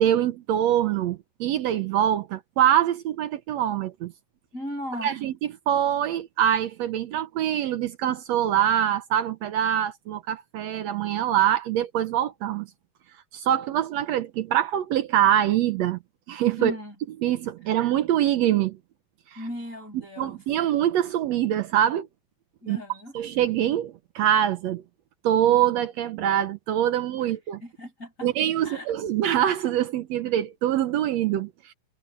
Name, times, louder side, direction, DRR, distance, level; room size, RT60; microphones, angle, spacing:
voice 1, 0.0-4.1 5.0-5.3 5.7-12.7 13.3-16.0 16.3-16.7 17.2-18.8 19.3-19.4 20.2-22.1 22.7-22.8 23.1-24.8 25.2-27.6 28.2-31.7, right 11 dB, 75° right, 1.6 m, -24 dB
voice 2, 4.5-5.2 16.6-16.9 19.4-20.4 22.6-23.1 27.2-27.3 27.6-28.3 28.6-28.9, equal, 20° left, 8.1 m, -36 dB
omnidirectional pair, 4.0 m